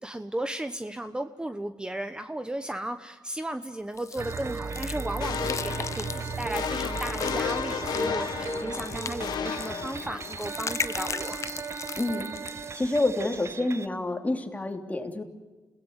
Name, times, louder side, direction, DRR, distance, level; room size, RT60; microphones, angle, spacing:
voice 1, 0.0-11.4, right 1 dB, 10° right, 9 dB, 1.1 m, -35 dB
sound 1, 4.0-12.7, left 5 dB, 45° left, 0.8 m, -38 dB
sound 2, 4.2-13.9, right 5 dB, 40° right, 0.9 m, -36 dB
sound 3, 5.2-10.5, left 8 dB, 85° left, 1.0 m, -33 dB
voice 2, 12.0-12.3 12.7-15.2, left 2 dB, 20° left, 5 dB, 3.0 m, -28 dB
29.0 x 17.5 x 8.2 m, 1.3 s
cardioid pair, 90°, 7 cm